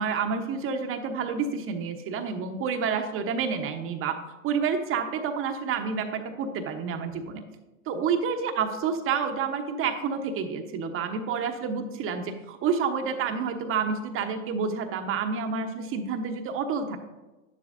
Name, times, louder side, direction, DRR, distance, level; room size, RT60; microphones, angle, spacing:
voice 1, 0.0-4.2 4.4-7.4 7.9-17.0, right 6 dB, 30° right, 6 dB, 1.0 m, -29 dB
11.0 x 11.0 x 2.6 m, 1.1 s
hypercardioid pair, 110°, 46 cm